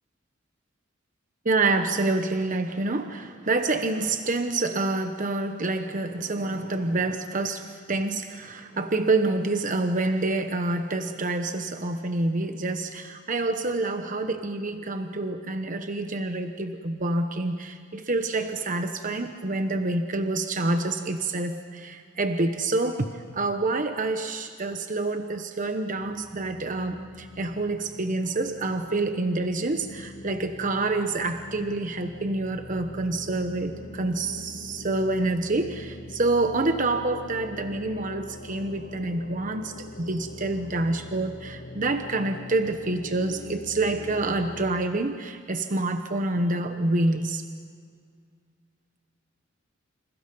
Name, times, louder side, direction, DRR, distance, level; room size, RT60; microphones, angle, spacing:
voice 1, 1.4-23.1 23.3-47.4, right 2 dB, 40° right, 7 dB, 1.1 m, -27 dB
sound 1, 25.9-44.7, left 1 dB, 55° left, 1.5 m, -43 dB
29.0 x 28.0 x 5.5 m, 2.1 s
head